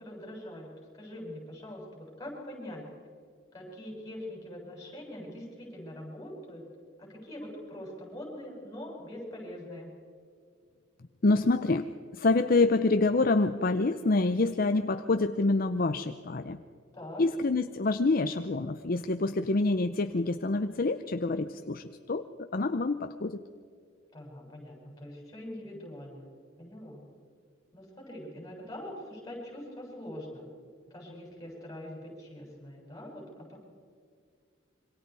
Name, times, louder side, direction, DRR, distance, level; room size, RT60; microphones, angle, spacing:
voice 1, 0.0-2.9 3.5-6.7 7.0-9.9 16.9-17.2 24.1-26.3 26.6-27.0 27.7-30.5 30.9-33.6, left 1 dB, 20° left, -2 dB, 7.3 m, -43 dB
voice 2, 11.2-16.6 17.2-23.4, left 3 dB, 45° left, 9 dB, 0.6 m, -27 dB
26.5 x 24.5 x 4.8 m, 2.2 s
head